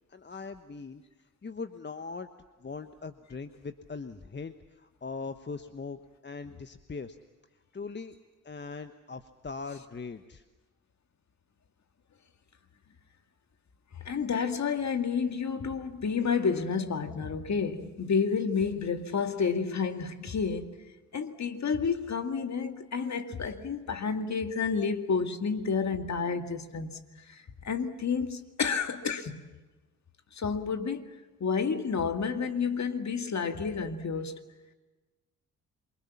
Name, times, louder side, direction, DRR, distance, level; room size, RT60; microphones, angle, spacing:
voice 1, 0.1-1.0 1.4-2.3 2.6-7.2 7.7-8.1 8.4-10.4, left 4 dB, 25° left, 1.2 m, -40 dB
voice 2, 14.0-20.8 21.1-27.0 27.3-29.4 30.3-31.1 31.4-34.4, left 5 dB, 40° left, 2.2 m, -30 dB
27.5 x 24.0 x 7.2 m
hypercardioid pair, 45°, 41 cm